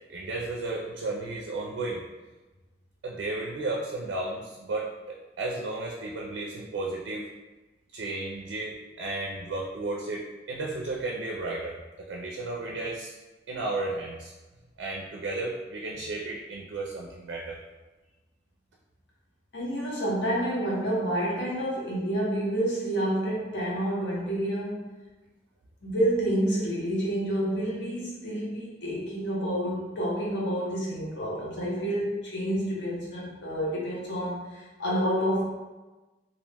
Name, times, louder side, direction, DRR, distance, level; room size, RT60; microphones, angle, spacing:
voice 1, 0.1-2.0 3.0-7.3 7.9-13.1 13.5-14.3 14.8-17.6, right 2 dB, 85° right, -1 dB, 0.4 m, -33 dB
voice 2, 19.5-24.9 25.8-35.5, right 1 dB, 75° left, -6 dB, 0.9 m, -29 dB
2.6 x 2.1 x 3.3 m, 1.2 s
head